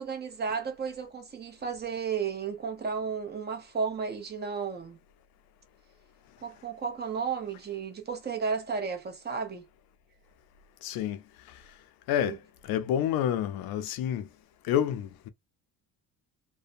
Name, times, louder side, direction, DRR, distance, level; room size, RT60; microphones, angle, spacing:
voice 1, 0.0-5.0 6.4-9.6 12.2-12.4, right 6 dB, 30° right, 0.8 m, -33 dB
voice 2, 10.8-11.2 12.1-14.3 14.6-15.3, left 10 dB, 75° left, 0.5 m, -29 dB
2.5 x 2.1 x 2.5 m
cardioid pair, 120°, 36 cm